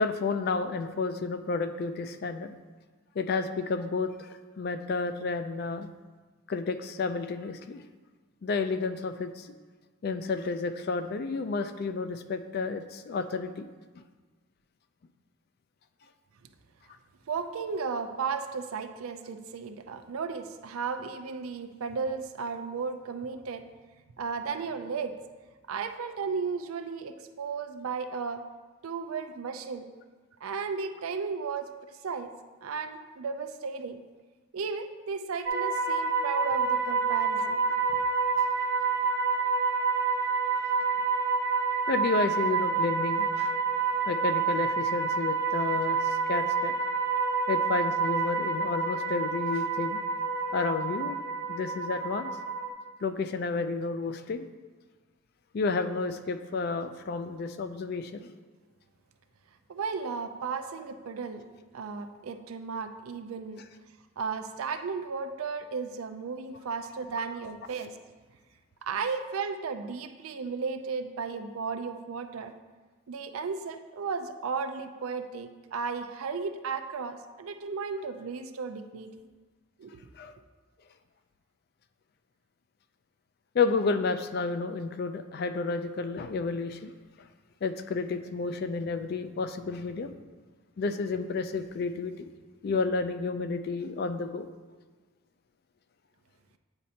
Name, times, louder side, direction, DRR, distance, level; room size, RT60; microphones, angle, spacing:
voice 1, 0.0-2.5 3.2-4.3 4.6-5.9 6.5-7.8 8.4-9.5 10.0-13.6 14.0-14.1 41.9-43.5 44.1-46.7 47.5-50.0 50.5-51.2 51.5-52.3 53.0-54.5 55.5-58.3 67.2-67.3 80.2-80.4 83.5-86.9 87.6-90.1 90.8-92.3 92.6-94.5, left 4 dB, 45° left, 9 dB, 0.3 m, -31 dB
voice 2, 17.3-23.6 24.2-25.2 25.7-28.4 28.8-29.9 30.4-32.3 32.6-34.0 34.5-37.6 59.7-61.5 61.7-63.6 64.2-67.9 68.8-72.5 73.1-79.1 79.8-80.0, right 5 dB, 85° right, 9 dB, 0.4 m, -34 dB
sound 1, 35.5-52.7, right 5 dB, 60° right, 0.9 m, -28 dB
8.8 x 4.2 x 2.8 m, 1.3 s
head